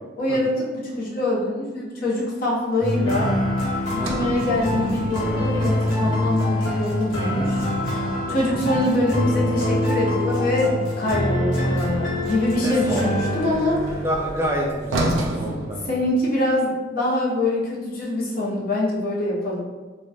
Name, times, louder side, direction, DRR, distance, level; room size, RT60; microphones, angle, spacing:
voice 1, 0.2-3.3 3.9-7.7 8.3-13.8 15.8-19.6, left 1 dB, 50° left, -4 dB, 0.5 m, -24 dB
sound 1, 2.8-15.1, left 1 dB, 80° left, 0.8 m, -25 dB
sound 2, 3.7-8.9, left 1 dB, 5° left, 0.9 m, -40 dB
Sliding door, 3.9-8.2 11.6-16.6, right 1 dB, 85° right, 0.4 m, -33 dB
voice 2, 4.0-4.3 8.3-8.6 12.6-13.0 14.0-15.9, equal, 15° right, -2 dB, 0.3 m, -28 dB
2.8 x 2.1 x 2.2 m, 1.3 s
head